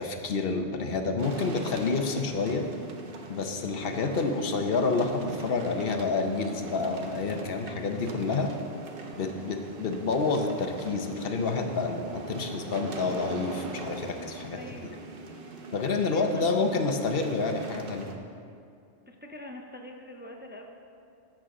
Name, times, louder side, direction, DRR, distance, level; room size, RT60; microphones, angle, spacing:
voice 1, 0.0-2.6 3.3-8.5 9.1-14.9 15.7-18.1, left 4 dB, 55° left, 5 dB, 1.0 m, -29 dB
sound 1, 1.2-18.1, right 3 dB, 55° right, 1.0 m, -42 dB
voice 2, 14.6-15.0 16.1-16.4 19.1-20.6, left 1 dB, 15° right, 1 dB, 0.5 m, -44 dB
13.5 x 7.8 x 3.8 m, 2.4 s
omnidirectional pair, 1.2 m